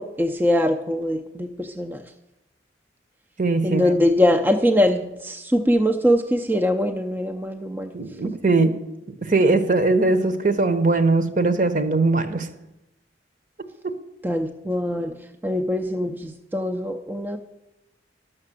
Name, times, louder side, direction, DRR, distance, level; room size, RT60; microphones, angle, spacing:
voice 1, 0.0-2.1 3.6-7.9 14.2-17.4, left 1 dB, 10° right, 4 dB, 0.5 m, -22 dB
voice 2, 3.4-3.9 7.9-8.7 9.2-12.5 13.8-13.9, right 3 dB, 45° right, 9 dB, 0.9 m, -20 dB
11.5 x 6.6 x 7.4 m, 0.93 s
head